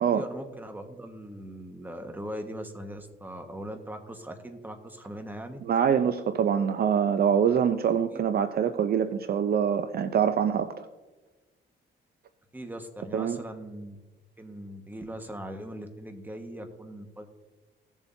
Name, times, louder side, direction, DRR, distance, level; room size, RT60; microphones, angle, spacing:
voice 1, 0.1-5.9 8.1-8.2 12.5-14.0 14.4-17.3, equal, 10° right, 5 dB, 1.4 m, -40 dB
voice 2, 5.7-10.9 13.1-13.4, right 8 dB, 50° right, 10 dB, 0.6 m, -24 dB
17.5 x 7.2 x 2.7 m, 1.2 s
cardioid pair, 90°, 20 cm